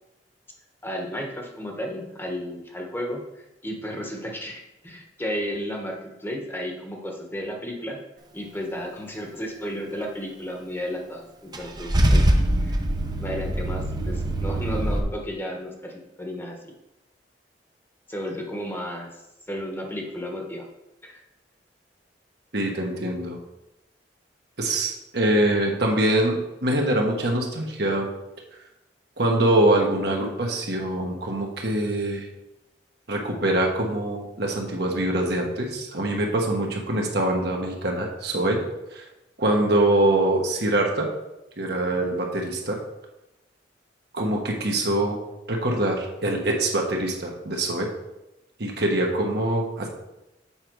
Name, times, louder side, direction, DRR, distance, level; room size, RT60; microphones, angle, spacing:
voice 1, 0.8-8.0 8.3-12.2 12.6-12.8 13.2-16.5 18.1-19.1 19.5-20.7 21.0-21.2, equal, 15° left, 1 dB, 1.1 m, -33 dB
Car / Engine starting / Idling, 11.5-15.0, right 1 dB, 25° right, 0.7 m, -23 dB
voice 2, 22.5-23.4 24.6-28.1 29.2-32.3 33.1-38.6 38.9-39.0 39.4-41.1 41.6-42.8 44.1-45.2 45.5-47.9 48.6-49.9, right 1 dB, 65° right, 0 dB, 1.4 m, -24 dB
7.3 x 5.0 x 4.6 m, 0.93 s
head